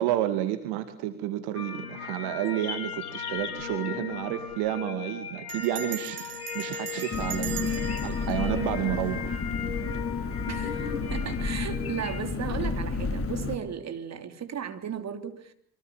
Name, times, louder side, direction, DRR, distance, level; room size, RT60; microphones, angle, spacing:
voice 1, 0.0-9.4, right 13 dB, 60° right, 2.2 m, -31 dB
sound 1, 1.5-12.2, left 7 dB, 85° left, 3.4 m, -37 dB
Bell, 3.4-3.7 4.0-4.1 4.3-4.7 5.5-9.6, right 10 dB, 80° right, 2.7 m, -40 dB
Engine, 7.1-13.6, left 4 dB, 30° left, 3.3 m, -31 dB
voice 2, 10.5-15.5, right 8 dB, 40° right, 3.5 m, -35 dB
28.5 x 25.0 x 7.3 m
hypercardioid pair, 65°, 43 cm